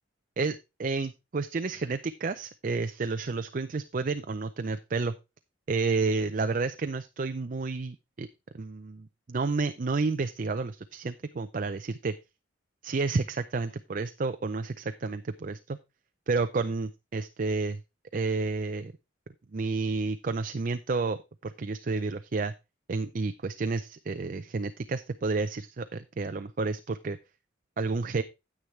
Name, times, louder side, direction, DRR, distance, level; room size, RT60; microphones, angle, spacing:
voice 1, 0.4-5.1 5.7-8.3 8.5-12.1 12.8-15.8 16.3-17.8 18.1-18.9 19.5-22.5 22.9-27.2 27.8-28.2, right 3 dB, 45° right, 10 dB, 0.5 m, -30 dB
9.6 x 8.6 x 3.2 m, 0.26 s
head